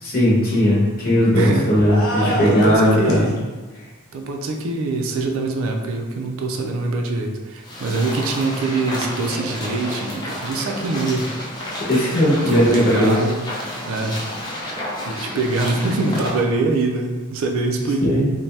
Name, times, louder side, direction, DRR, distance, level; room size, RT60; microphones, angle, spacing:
voice 1, 0.0-3.2 11.8-13.1 18.0-18.3, equal, 45° left, -6 dB, 0.9 m, -17 dB
voice 2, 1.3-1.7 2.2-3.4 4.1-11.3 12.5-13.5 13.9-14.3 15.1-18.3, right 3 dB, 70° right, 3 dB, 0.4 m, -24 dB
sound 1, 1.8-3.3, equal, 70° left, 0.6 m, -27 dB
sound 2, 7.6-16.4, left 1 dB, 20° left, 0.4 m, -31 dB
2.7 x 2.2 x 3.2 m, 1.3 s
head